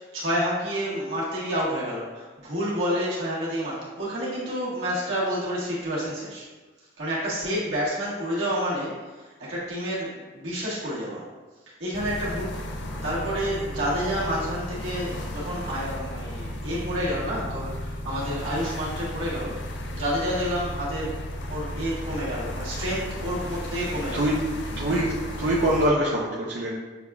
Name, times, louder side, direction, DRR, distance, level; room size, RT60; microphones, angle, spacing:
voice 1, 0.0-6.4 7.0-11.2 11.8-19.6 19.9-21.2 21.5-24.3, equal, 90° right, -7 dB, 1.5 m, -29 dB
sound 1, 11.9-25.9, left 1 dB, 65° left, 0.4 m, -34 dB
voice 2, 24.8-25.1 25.4-26.7, right 1 dB, 65° right, -6 dB, 0.5 m, -23 dB
6.7 x 2.3 x 2.4 m, 1.3 s
head